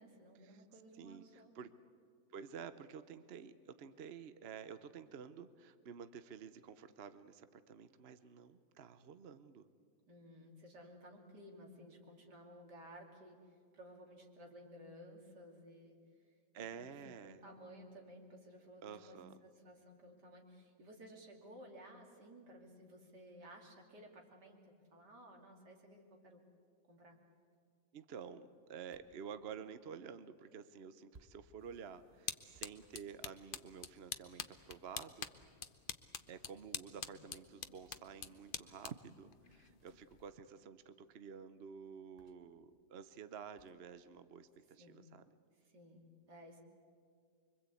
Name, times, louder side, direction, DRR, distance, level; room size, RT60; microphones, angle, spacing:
voice 1, 0.0-1.5 10.1-16.0 16.2-26.4 26.8-27.2 37.0-37.1 44.8-45.1 45.5-46.6, equal, 80° right, 1 dB, 3.4 m, -57 dB
voice 2, 0.9-1.7 2.3-9.7 16.5-17.4 18.8-19.4 27.9-35.3 36.3-45.3, right 7 dB, 50° right, 12 dB, 0.8 m, -51 dB
sound 1, 28.9-29.3 31.1-31.5 32.5-33.7 35.4-36.0 37.8-38.1 39.8-40.2 42.2-42.6 43.6-43.8, right 3 dB, 25° right, 1.2 m, -66 dB
sound 2, 31.6-40.3, left 7 dB, 45° left, 0.7 m, -48 dB
25.0 x 23.5 x 8.4 m, 2.2 s
omnidirectional pair, 1.8 m